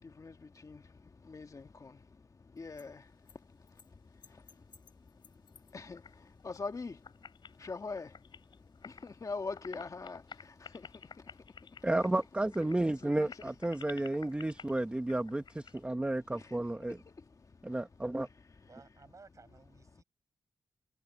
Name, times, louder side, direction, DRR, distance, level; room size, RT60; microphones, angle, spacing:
voice 1, 0.0-11.9 13.0-13.4 14.2-14.8 15.7-16.0 16.4-18.7 19.9-20.0, left 4 dB, 40° left, 1.8 m, -46 dB
sound 1, 2.6-2.8 3.3-3.4 3.7-3.9 4.2-6.1 6.4-6.8 7.0-9.1 9.4-15.8, left 6 dB, 65° left, 3.4 m, -53 dB
voice 2, 11.8-17.0 17.6-18.3, right 1 dB, 15° right, 1.1 m, -32 dB
voice 3, 18.7-20.0, right 4 dB, 40° right, 7.1 m, -57 dB
wide cardioid pair, 95°, 9 cm